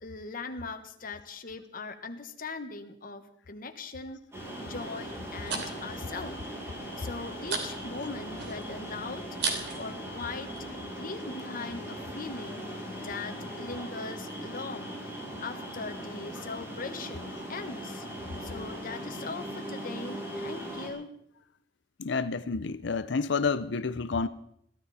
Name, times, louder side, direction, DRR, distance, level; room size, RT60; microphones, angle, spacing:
voice 1, 0.0-4.2 4.6-6.4 7.0-9.3 9.8-10.5 10.9-12.7 12.9-15.0 15.4-18.1 18.4-21.1, left 3 dB, 50° left, 1.5 m, -40 dB
sound 1, 4.3-20.9, equal, 15° right, 6.2 m, -39 dB
sound 2, 5.0-10.8, right 4 dB, 65° right, 3.1 m, -39 dB
voice 2, 22.0-24.3, left 4 dB, 65° left, 0.6 m, -29 dB
22.5 x 15.0 x 4.3 m
head